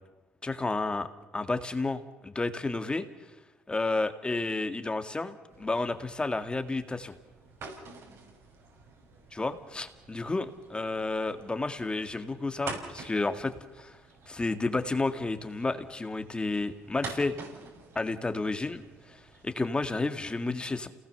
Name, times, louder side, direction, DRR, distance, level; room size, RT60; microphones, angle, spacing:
voice 1, 0.4-1.1 1.3-3.0 3.7-7.1 9.3-13.5 13.8-14.0 14.3-17.3 18.0-18.8 19.4-20.9, left 3 dB, 20° left, 9 dB, 2.0 m, -31 dB
sound 1, 5.5-19.7, right 4 dB, 65° right, 6.2 m, -47 dB
28.5 x 19.0 x 6.9 m, 1.1 s
supercardioid pair, 80°, 5 cm